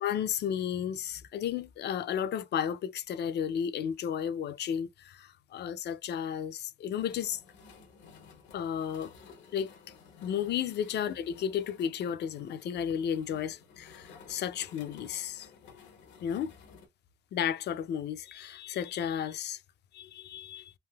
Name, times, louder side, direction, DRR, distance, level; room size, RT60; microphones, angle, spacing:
voice 1, 0.0-7.4 8.5-9.1 9.5-9.7 10.2-15.5 16.2-16.5 17.3-19.6 19.9-20.7, left 9 dB, 65° left, 0.4 m, -33 dB
sound 1, 6.9-16.9, left 5 dB, 85° left, 0.8 m, -55 dB
3.4 x 2.6 x 2.2 m
cardioid pair, 95°, 19 cm